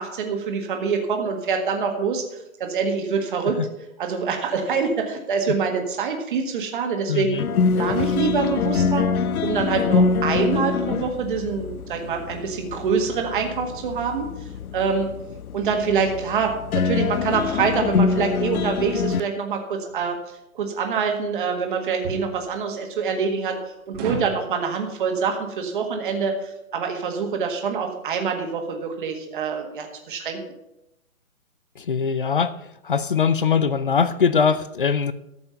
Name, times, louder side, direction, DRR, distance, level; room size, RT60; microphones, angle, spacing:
voice 1, 0.0-3.6 4.0-7.4 7.7-9.0 9.4-14.3 14.7-15.1 15.5-20.2 20.6-23.6 23.9-30.4, right 5 dB, 35° right, 3 dB, 1.7 m, -25 dB
voice 2, 7.1-7.4 31.8-32.5 32.8-35.1, left 6 dB, 40° left, 15 dB, 0.4 m, -21 dB
sound 1, 7.4-19.2, left 5 dB, 85° left, 0.8 m, -25 dB
sound 2, 19.9-20.1 22.0-22.3 23.9-24.4, right 3 dB, 15° right, 1.4 m, -30 dB
12.5 x 6.9 x 5.7 m, 0.88 s
hypercardioid pair, 170°, 43 cm